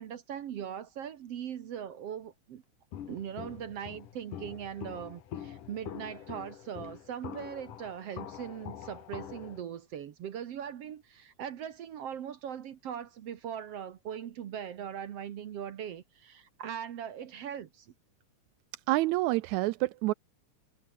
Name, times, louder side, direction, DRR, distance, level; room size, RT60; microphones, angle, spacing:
voice 1, 0.0-2.6 3.1-17.9, right 9 dB, 60° right, 2.0 m, -40 dB
Walk footsteps, 2.9-9.6, left 10 dB, 90° left, 3.5 m, -44 dB
voice 2, 18.9-20.1, right 18 dB, 80° right, 1.8 m, -27 dB
omnidirectional pair, 3.6 m